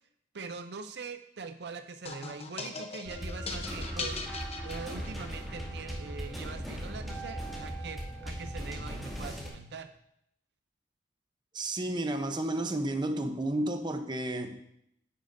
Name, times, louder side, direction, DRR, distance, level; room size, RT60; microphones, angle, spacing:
voice 1, 0.3-4.2 4.6-9.9, right 4 dB, 70° right, 0.5 m, -42 dB
sound 1, 2.1-5.4, left 3 dB, 35° left, 0.9 m, -40 dB
sound 2, 3.0-9.5, equal, ahead, 2.2 m, -38 dB
voice 2, 11.5-14.6, right 1 dB, 25° right, 0.7 m, -31 dB
10.0 x 9.4 x 2.6 m
head